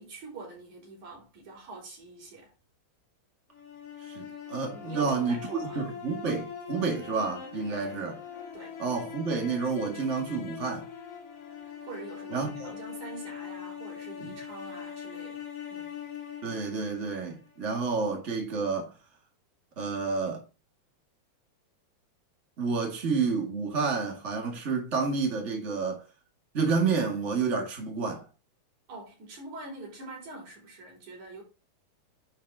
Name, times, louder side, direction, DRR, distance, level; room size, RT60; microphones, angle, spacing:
voice 1, 0.0-2.5 4.7-5.9 7.7-8.0 8.5-8.8 11.8-15.9 28.9-31.4, right 3 dB, 70° right, 5.3 m, -45 dB
sound 1, 3.5-17.7, left 8 dB, 50° left, 2.9 m, -42 dB
voice 2, 4.1-8.2 8.8-10.9 12.3-12.7 14.2-14.3 16.4-18.9 19.8-20.4 22.6-26.0 26.5-28.3, right 4 dB, 25° right, 1.9 m, -30 dB
10.5 x 4.6 x 3.6 m
omnidirectional pair, 3.5 m